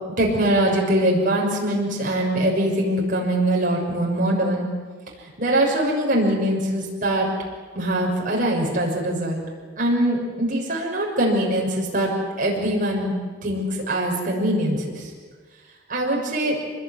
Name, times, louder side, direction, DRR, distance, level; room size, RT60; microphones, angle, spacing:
voice 1, 0.2-4.7 5.4-7.3 7.7-9.4 9.8-12.1 12.4-13.1 13.4-15.1 15.9-16.6, right 1 dB, 45° right, -2 dB, 6.5 m, -22 dB
26.0 x 21.0 x 9.7 m, 1.5 s
head